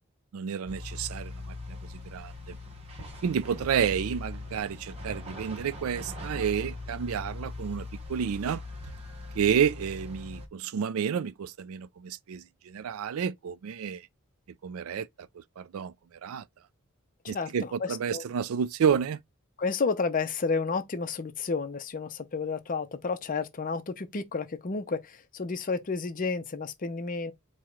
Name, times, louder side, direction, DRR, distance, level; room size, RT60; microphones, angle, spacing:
voice 1, 0.3-2.6 3.2-8.6 9.3-14.1 14.6-15.9 16.2-16.4 17.3-19.2, right 7 dB, 70° right, 0.4 m, -30 dB
sound 1, 0.7-10.5, left 2 dB, 30° right, 1.0 m, -40 dB
voice 2, 17.2-18.2 19.6-27.3, left 4 dB, 40° left, 0.5 m, -31 dB
4.6 x 2.1 x 3.7 m
head